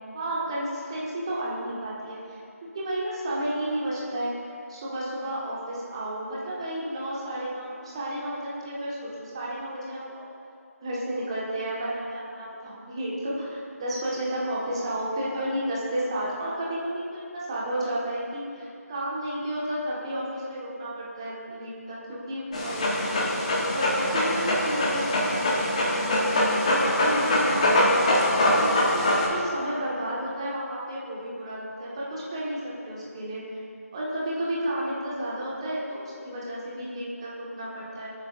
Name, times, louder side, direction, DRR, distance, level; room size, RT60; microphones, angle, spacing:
voice 1, 0.1-4.4 4.7-10.2 10.8-22.9 23.7-33.6 33.9-38.1, right 1 dB, 20° right, -6 dB, 1.7 m, -32 dB
Dog, 22.5-29.3, left 1 dB, 25° left, 1.3 m, -23 dB
21.5 x 8.8 x 2.6 m, 2.5 s
figure-of-eight pair, 160°, 8 cm